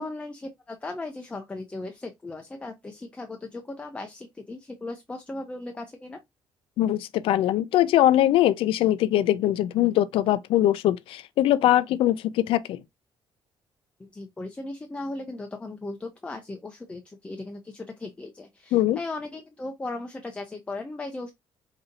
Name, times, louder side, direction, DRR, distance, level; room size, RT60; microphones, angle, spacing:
voice 1, 0.0-6.2 14.0-21.3, left 2 dB, 10° left, 0.4 m, -37 dB
voice 2, 6.8-12.8 18.7-19.0, left 13 dB, 75° left, 0.4 m, -22 dB
5.0 x 2.7 x 2.7 m
cardioid pair, 145°, 10 cm